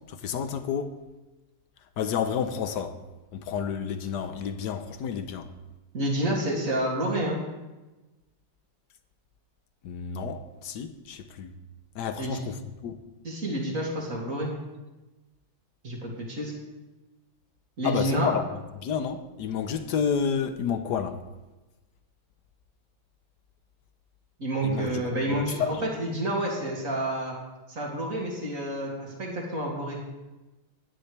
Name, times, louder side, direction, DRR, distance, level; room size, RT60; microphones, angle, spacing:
voice 1, 0.1-1.0 2.0-3.0 3.3-5.5 9.8-11.5 11.9-13.0 17.8-18.5 18.8-21.2 24.6-25.8, left 7 dB, 60° left, 1.3 m, -30 dB
voice 2, 5.9-7.4 12.2-12.5 13.2-14.5 15.8-16.5 17.8-18.3 24.4-27.4 27.7-30.0, right 1 dB, 40° right, 2.9 m, -29 dB
18.0 x 10.0 x 3.4 m
omnidirectional pair, 2.2 m